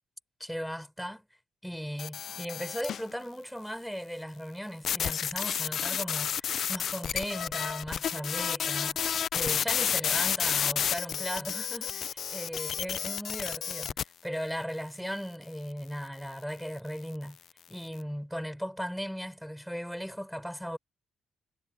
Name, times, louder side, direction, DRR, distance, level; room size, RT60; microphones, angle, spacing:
voice 1, 0.4-1.2 1.6-13.9 14.2-17.4 17.7-20.8, equal, ahead, 6.4 m, -37 dB
sound 1, 2.0-3.1 4.8-14.0, left 8 dB, 60° left, 0.5 m, -31 dB
cardioid pair, 120°, 0 cm